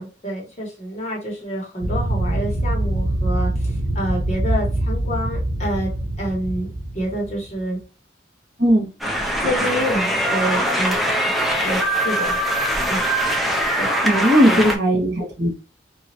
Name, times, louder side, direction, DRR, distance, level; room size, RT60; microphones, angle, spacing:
voice 1, 0.0-5.9 6.2-6.7 6.9-7.8 9.4-11.0 11.6-12.4 12.9-13.0 13.8-14.7, equal, 35° left, -3 dB, 1.3 m, -27 dB
sound 1, 1.8-7.6, right 1 dB, 85° right, 0.8 m, -24 dB
sound 2, 9.0-14.8, right 1 dB, ahead, 0.5 m, -22 dB
voice 2, 14.0-15.5, equal, 60° right, -3 dB, 1.4 m, -17 dB
3.0 x 2.6 x 2.8 m, 0.32 s
head